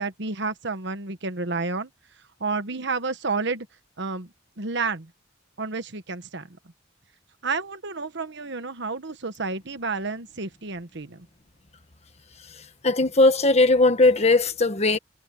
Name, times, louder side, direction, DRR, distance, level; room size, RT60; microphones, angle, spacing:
voice 1, 0.0-1.9 2.4-3.7 4.0-5.1 5.6-6.5 7.4-11.3, right 4 dB, 60° right, 1.3 m, -30 dB
voice 2, 12.8-15.0, left 2 dB, 35° left, 1.5 m, -18 dB
head